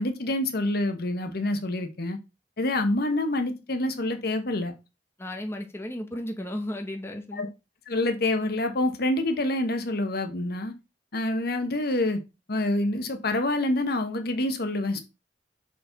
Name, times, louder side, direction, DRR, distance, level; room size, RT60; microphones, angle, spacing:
voice 1, 0.0-2.2 2.6-4.7 7.4-7.5 7.9-10.7 11.1-12.2 12.5-15.0, left 1 dB, 60° left, 1.2 m, -27 dB
voice 2, 5.2-7.4, left 1 dB, 15° left, 0.8 m, -34 dB
6.3 x 4.8 x 3.9 m
head